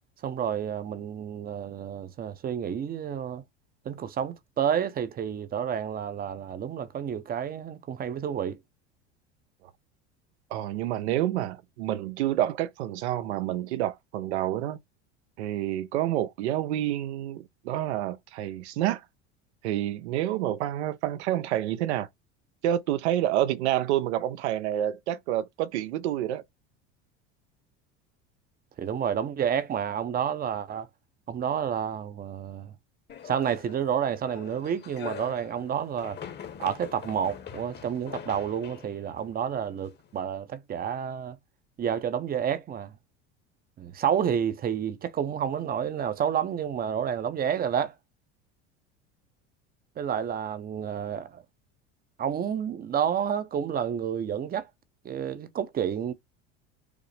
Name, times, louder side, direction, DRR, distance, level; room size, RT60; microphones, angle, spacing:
voice 1, 0.2-3.4 3.9-8.6 28.8-30.9 31.3-32.7 33.2-36.2 36.6-41.4 41.8-42.9 43.8-47.9 50.0-51.4 52.2-54.7 55.0-56.1, right 8 dB, 30° right, 0.5 m, -30 dB
voice 2, 10.5-14.8 15.4-19.0 19.6-22.1 22.6-26.4, right 12 dB, 85° right, 0.6 m, -28 dB
sound 1, 33.1-40.2, left 8 dB, 30° left, 0.9 m, -44 dB
4.9 x 2.0 x 3.2 m
supercardioid pair, 100°, 33 cm